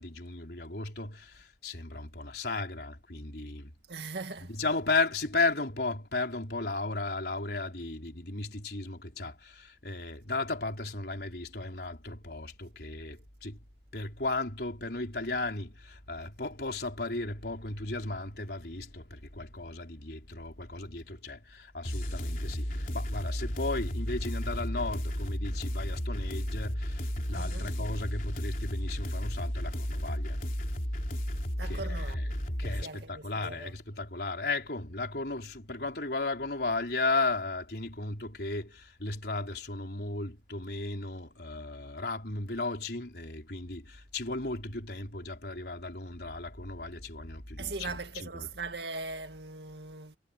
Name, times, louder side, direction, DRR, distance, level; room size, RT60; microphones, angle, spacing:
voice 1, 0.0-3.7 4.5-13.6 13.9-30.4 31.6-32.3 32.6-48.5, left 3 dB, 65° left, 4.2 m, -35 dB
voice 2, 3.9-4.5 27.3-27.7 31.6-33.7 47.6-50.2, right 3 dB, 75° right, 2.1 m, -40 dB
sound 1, 21.8-32.8, equal, 50° left, 3.9 m, -33 dB
head